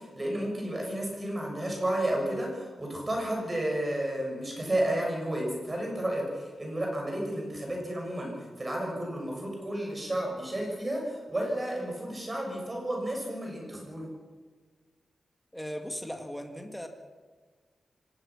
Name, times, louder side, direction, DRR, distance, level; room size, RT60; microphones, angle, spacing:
voice 1, 0.0-14.1, right 1 dB, 20° right, 0 dB, 6.7 m, -32 dB
voice 2, 15.5-16.9, equal, ahead, 3 dB, 1.8 m, -38 dB
25.0 x 18.5 x 6.0 m, 1.5 s
wide cardioid pair, 170°, 0 cm